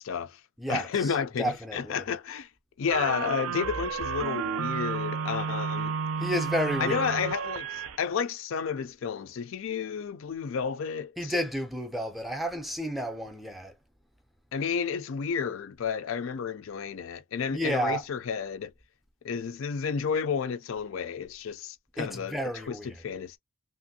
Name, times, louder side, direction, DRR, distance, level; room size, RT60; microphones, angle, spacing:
voice 1, 0.0-0.4 0.7-2.5 2.8-5.9 6.8-11.3 14.5-18.7 19.2-22.4 22.7-23.4, left 6 dB, 65° left, 0.4 m, -31 dB
voice 2, 0.6-2.1 6.2-7.1 11.2-13.8 17.5-18.0 22.0-23.0, equal, ahead, 0.4 m, -31 dB
sound 1, 2.9-8.0, right 6 dB, 70° right, 0.4 m, -31 dB
2.9 x 2.6 x 2.6 m
head